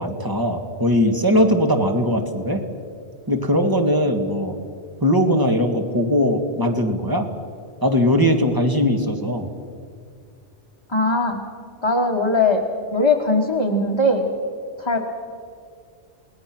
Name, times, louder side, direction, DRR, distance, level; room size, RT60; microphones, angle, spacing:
voice 1, 0.0-2.6 3.3-4.5 5.0-7.3 7.8-9.5, equal, 20° right, 4 dB, 1.9 m, -20 dB
voice 2, 10.9-11.4 11.8-12.6 12.9-14.3 14.8-15.0, left 2 dB, 25° left, -1 dB, 1.5 m, -19 dB
28.5 x 20.0 x 6.0 m, 2.2 s
omnidirectional pair, 1.2 m